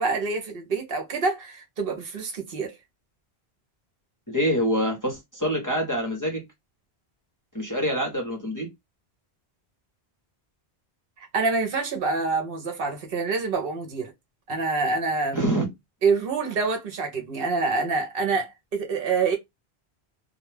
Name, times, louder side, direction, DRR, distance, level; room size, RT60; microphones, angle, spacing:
voice 1, 0.0-2.7 11.2-14.1 14.5-15.4 16.0-19.4, right 4 dB, 65° right, 0.8 m, -26 dB
voice 2, 4.3-6.4 7.5-8.7 15.3-15.6, equal, 20° left, 0.7 m, -25 dB
2.2 x 2.1 x 3.1 m
omnidirectional pair, 1.1 m